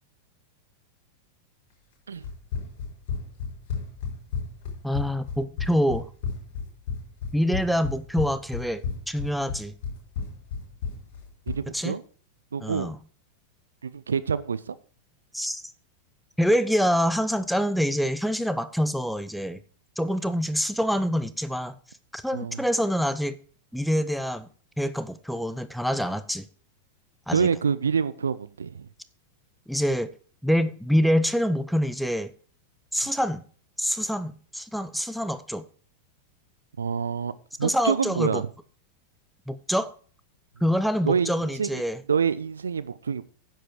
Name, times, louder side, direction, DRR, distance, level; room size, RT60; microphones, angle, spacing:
Run, 2.2-11.7, left 5 dB, 50° left, 4.7 m, -33 dB
voice 1, 4.8-6.1 7.3-9.7 11.7-12.0 12.6-13.0 15.3-15.6 16.4-19.6 20.0-21.8 22.1-23.4 23.7-24.5 24.8-26.5 27.3-27.5 29.7-30.1 30.4-32.3 32.9-33.4 33.8-35.6 37.6-38.4 39.5-39.9 40.6-42.0, equal, ahead, 0.9 m, -26 dB
voice 2, 11.5-12.0 12.5-12.9 13.8-14.8 22.3-22.6 27.3-28.9 36.8-37.3 37.6-38.5 41.0-41.8 42.1-43.2, right 6 dB, 70° right, 0.6 m, -26 dB
10.5 x 7.8 x 4.5 m
figure-of-eight pair, 90°, 0 cm